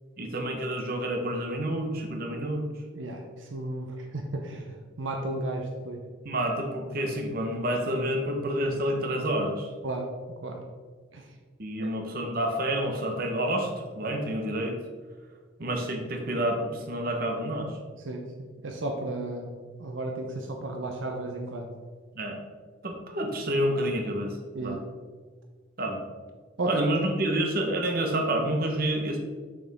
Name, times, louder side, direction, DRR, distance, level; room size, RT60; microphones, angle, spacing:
voice 1, 0.2-2.7 6.2-9.7 11.6-14.8 15.6-17.7 22.2-22.4 22.8-24.3 24.6-24.8 25.8-26.1 26.7-29.2, right 1 dB, 50° right, 3 dB, 1.0 m, -28 dB
voice 2, 2.9-6.0 9.8-10.1 10.4-10.6 11.1-11.3 11.8-11.9 18.0-18.3 18.6-21.7 24.5-24.8 26.6-26.8, right 2 dB, 75° right, 3 dB, 0.7 m, -34 dB
6.8 x 6.3 x 3.5 m, 1.5 s
head